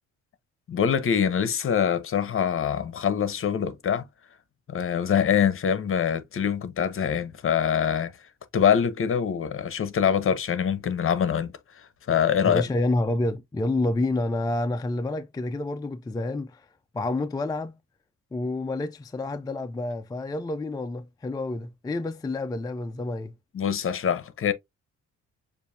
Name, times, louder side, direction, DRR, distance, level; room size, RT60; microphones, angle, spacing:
voice 1, 0.7-4.1 4.7-8.1 8.5-12.6 23.5-24.5, left 8 dB, 45° left, 0.9 m, -24 dB
voice 2, 12.4-16.7 16.9-17.8 18.3-23.3, left 2 dB, 15° left, 0.4 m, -28 dB
6.9 x 2.6 x 2.6 m
cardioid pair, 90°, 30 cm